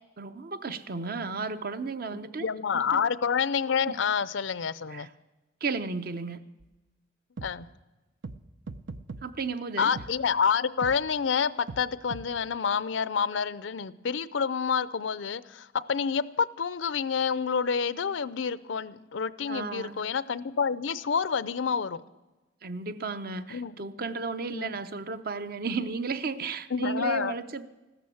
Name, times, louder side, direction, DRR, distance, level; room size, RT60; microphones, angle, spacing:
voice 1, 0.2-2.5 2.7-3.0 3.9-4.0 4.9-5.1 5.6-6.5 9.2-9.9 19.5-20.0 22.6-27.7, right 4 dB, 50° right, 11 dB, 0.8 m, -34 dB
voice 2, 2.1-5.1 7.4-7.7 9.8-22.0 23.5-23.7 24.5-24.7 26.7-27.3, left 6 dB, 80° left, 18 dB, 0.5 m, -28 dB
sound 1, 6.6-6.7 7.4-7.5 8.2-8.4 8.7-9.2 10.0-10.1 10.8-10.9 11.7-11.8 12.1-12.2, right 3 dB, 90° right, 0.7 m, -38 dB
15.0 x 13.0 x 7.0 m, 1.1 s
head